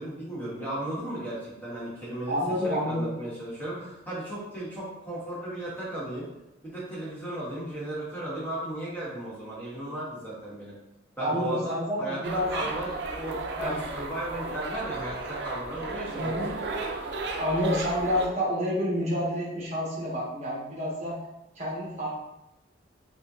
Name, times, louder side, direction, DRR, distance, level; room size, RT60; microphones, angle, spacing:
voice 1, 0.0-6.3 6.6-10.8 11.2-16.3 16.6-16.7, right 1 dB, 10° left, -8 dB, 1.1 m, -35 dB
voice 2, 2.3-3.1 11.2-12.5 13.6-13.7 16.1-16.5 17.4-21.2 21.6-22.2, equal, 40° right, -6 dB, 1.2 m, -29 dB
sound 1, 12.2-18.3, right 3 dB, 60° right, 0.5 m, -35 dB
5.0 x 2.2 x 2.7 m, 0.91 s
head